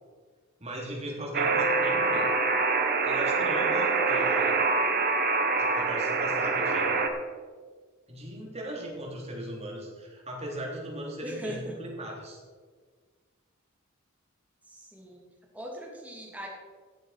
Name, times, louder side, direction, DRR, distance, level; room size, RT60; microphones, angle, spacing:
voice 1, 0.6-2.3 3.0-4.6 5.6-7.0 8.1-12.4, right 1 dB, 30° right, -1 dB, 3.2 m, -38 dB
Alarm, 1.3-7.1, right 4 dB, 45° right, 1.3 m, -25 dB
voice 2, 11.2-11.8 14.7-15.2 15.5-16.5, equal, 5° right, -2 dB, 2.8 m, -40 dB
16.0 x 7.6 x 5.8 m, 1.5 s
head